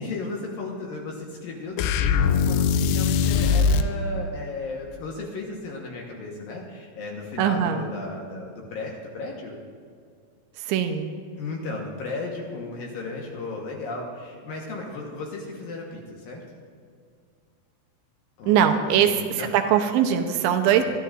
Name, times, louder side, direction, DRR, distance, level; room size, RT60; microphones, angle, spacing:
voice 1, 0.0-9.6 11.4-16.4 18.4-19.5 20.7-20.8, left 3 dB, 70° left, -1 dB, 2.4 m, -35 dB
sound 1, 1.8-3.9, left 6 dB, 85° left, 2.6 m, -21 dB
voice 2, 7.4-7.9 10.6-11.1 18.5-20.8, right 9 dB, 85° right, 6 dB, 3.0 m, -21 dB
22.0 x 12.5 x 2.5 m, 2.1 s
omnidirectional pair, 5.4 m